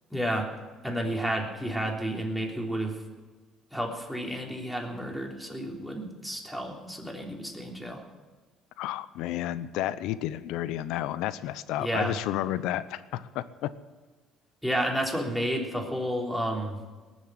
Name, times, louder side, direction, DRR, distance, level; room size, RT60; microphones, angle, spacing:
voice 1, 0.1-0.5 0.8-3.0 3.7-8.0 11.8-12.2 14.6-16.8, right 1 dB, ahead, -1 dB, 3.4 m, -31 dB
voice 2, 8.8-13.7, left 13 dB, 80° left, 15 dB, 0.7 m, -31 dB
19.0 x 7.3 x 9.6 m, 1.3 s
supercardioid pair, 85°, 0 cm